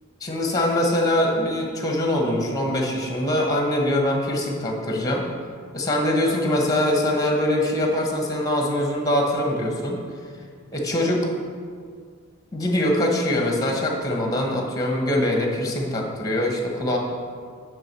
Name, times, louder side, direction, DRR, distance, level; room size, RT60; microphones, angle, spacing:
voice 1, 0.2-5.3 5.7-10.0 10.7-11.3 12.5-17.0, left 1 dB, 15° left, 1 dB, 1.1 m, -23 dB
9.0 x 3.7 x 6.6 m, 2.1 s
head